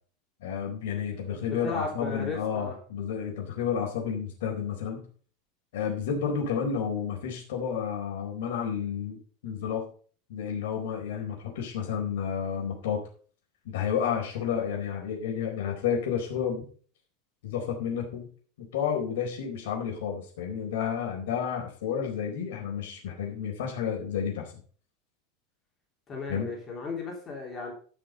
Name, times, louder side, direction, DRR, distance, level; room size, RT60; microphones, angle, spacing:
voice 1, 0.4-5.1 5.7-9.9 10.3-13.0 13.6-16.6 17.4-18.3 18.6-24.5 26.3-26.5, left 7 dB, 90° left, 0 dB, 4.1 m, -31 dB
voice 2, 1.4-2.8 26.1-27.7, left 4 dB, 20° left, 0 dB, 3.3 m, -35 dB
13.0 x 6.3 x 5.2 m, 0.44 s
supercardioid pair, 165°, 0 cm